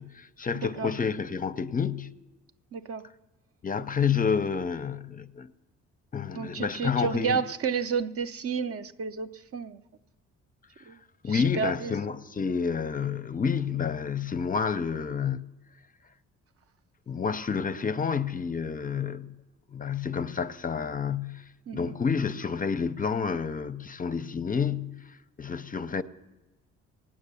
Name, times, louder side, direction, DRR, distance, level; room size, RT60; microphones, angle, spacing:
voice 1, 0.0-2.1 3.6-5.5 6.1-7.4 11.2-15.5 17.1-19.3 19.7-21.4 21.7-26.0, left 6 dB, 30° left, 0.5 m, -29 dB
voice 2, 0.5-0.9 2.7-3.0 6.3-9.8 10.9-11.0 11.3-11.9 21.7-21.9, right 6 dB, 50° right, 0.7 m, -31 dB
17.5 x 8.8 x 6.9 m
cardioid pair, 90°, 30 cm